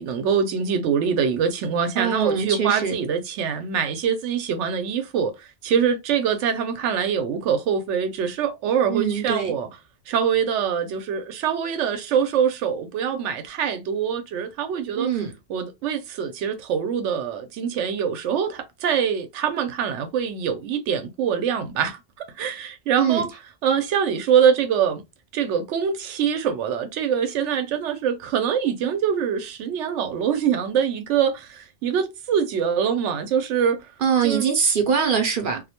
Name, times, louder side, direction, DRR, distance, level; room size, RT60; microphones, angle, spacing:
voice 1, 0.0-9.7 10.1-15.1 15.5-25.0 25.3-33.8 34.2-34.4, right 7 dB, 90° right, 0.9 m, -24 dB
voice 2, 2.0-2.9 8.9-9.5 15.0-15.3 23.0-23.3 34.0-35.6, right 7 dB, 60° right, 0.6 m, -22 dB
2.3 x 2.1 x 2.7 m
omnidirectional pair, 1.2 m